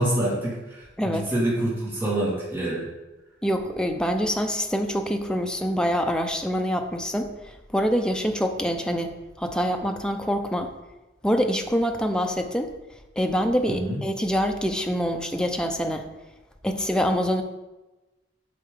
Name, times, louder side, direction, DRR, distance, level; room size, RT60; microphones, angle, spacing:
voice 1, 0.0-2.9 13.7-14.0, right 1 dB, 15° right, -7 dB, 1.8 m, -26 dB
voice 2, 1.0-1.3 3.4-10.7 11.2-12.7 13.2-16.1 16.6-17.4, equal, 5° left, 4 dB, 0.6 m, -25 dB
8.5 x 5.7 x 3.6 m, 1.1 s
head